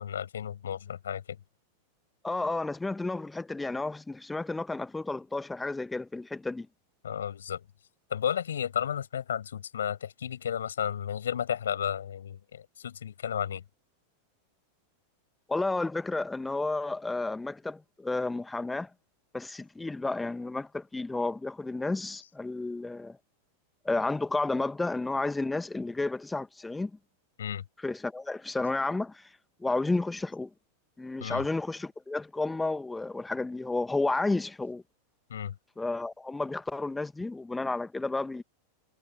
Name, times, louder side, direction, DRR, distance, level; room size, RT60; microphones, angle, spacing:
voice 1, 0.0-1.4 7.0-7.6 8.1-13.6 27.4-27.6 31.2-31.4 35.3-35.5, left 9 dB, 65° left, 6.6 m, -33 dB
voice 2, 2.2-6.7 15.5-18.9 19.3-23.2 23.9-26.9 27.8-29.2 29.6-30.5 31.0-34.8 35.8-38.4, left 2 dB, 10° left, 1.8 m, -31 dB
figure-of-eight pair, 90°, 0 cm